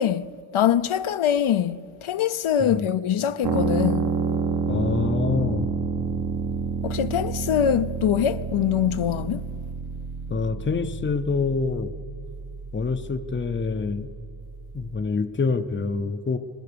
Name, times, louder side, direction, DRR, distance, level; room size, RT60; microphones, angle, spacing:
voice 1, 0.0-4.1 6.8-9.5, left 9 dB, 75° left, 0.7 m, -23 dB
sound 1, 3.4-15.1, right 5 dB, 45° right, 1.1 m, -29 dB
voice 2, 4.7-5.7 10.3-11.9 12.7-14.1 14.7-16.4, left 4 dB, 25° left, 0.6 m, -26 dB
26.5 x 19.0 x 6.8 m
wide cardioid pair, 180°, 49 cm